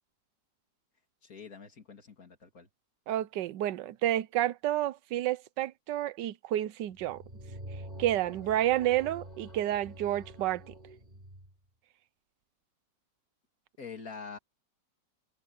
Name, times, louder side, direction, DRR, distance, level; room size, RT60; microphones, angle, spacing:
voice 1, 1.2-2.7 13.8-14.4, left 5 dB, 50° left, 2.9 m, -45 dB
voice 2, 3.1-7.2 8.0-10.7, right 13 dB, 80° right, 1.3 m, -30 dB
sound 1, 6.9-11.5, right 1 dB, 25° right, 4.1 m, -47 dB
omnidirectional pair, 1.9 m